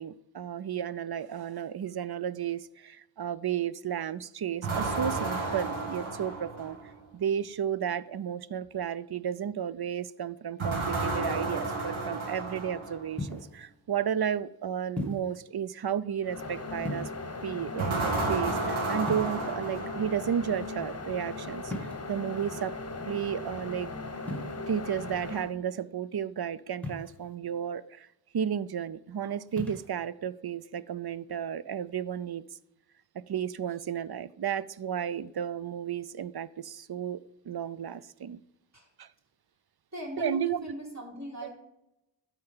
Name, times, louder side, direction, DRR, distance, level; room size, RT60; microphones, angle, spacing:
voice 1, 0.0-6.8 7.1-17.1 17.4-22.7 23.0-23.9 24.7-28.1 28.3-32.4 33.1-37.2 37.5-38.4 39.0-39.1 40.2-40.7, right 8 dB, 55° right, 0.6 m, -33 dB
sound 1, 4.6-7.0 10.6-13.1 17.8-20.4, right 3 dB, 85° right, 2.2 m, -32 dB
sound 2, 13.2-13.6 15.0-15.4 16.8-17.4 19.0-19.8 21.7-22.2 24.2-24.5 26.8-27.3 29.5-29.9, left 1 dB, 5° left, 2.2 m, -37 dB
sound 3, 16.2-25.5, left 3 dB, 30° left, 1.2 m, -38 dB
voice 2, 39.9-41.5, equal, 35° right, 4.1 m, -39 dB
12.5 x 4.6 x 5.6 m
cardioid pair, 45°, 47 cm